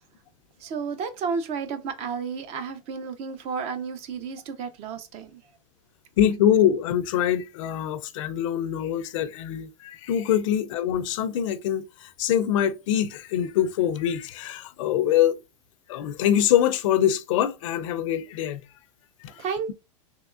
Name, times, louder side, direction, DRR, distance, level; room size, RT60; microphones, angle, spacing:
voice 1, 0.6-5.4 19.4-19.7, right 5 dB, 40° right, 0.5 m, -32 dB
voice 2, 6.2-15.4 15.9-18.6 19.2-19.4, left 10 dB, 75° left, 0.5 m, -24 dB
3.5 x 2.9 x 2.3 m
supercardioid pair, 140°, 16 cm